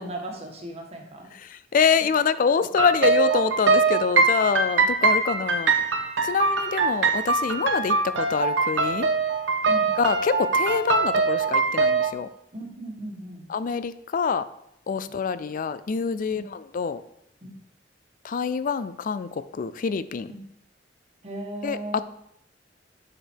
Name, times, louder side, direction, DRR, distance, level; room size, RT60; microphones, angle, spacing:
voice 1, 0.0-1.3 2.0-2.1 9.7-9.9 12.5-13.5 14.9-15.1 16.3-16.5 17.4-17.6 20.3-20.4 21.2-22.0, right 1 dB, 35° right, 1 dB, 1.4 m, -37 dB
voice 2, 1.4-5.7 6.2-9.1 10.0-12.3 13.5-14.4 14.9-17.0 18.2-20.3 21.6-22.0, left 5 dB, 50° left, 15 dB, 0.4 m, -25 dB
sound 1, 2.8-12.1, right 4 dB, 85° right, 0.7 m, -23 dB
7.4 x 5.0 x 4.5 m, 0.78 s
head